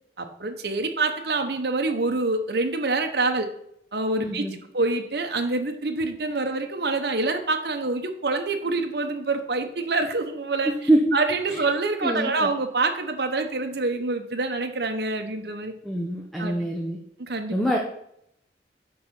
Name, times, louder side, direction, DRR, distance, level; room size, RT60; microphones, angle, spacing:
voice 1, 0.2-3.5 3.9-4.4 4.7-10.7 11.1-15.7 16.4-16.7 17.2-17.5, right 3 dB, 60° right, 5 dB, 1.0 m, -26 dB
voice 2, 4.2-4.6 10.6-11.2 11.5-11.6 12.0-12.5 15.8-17.0 17.5-17.8, right 1 dB, ahead, -1 dB, 0.7 m, -24 dB
8.4 x 4.0 x 5.9 m, 0.74 s
head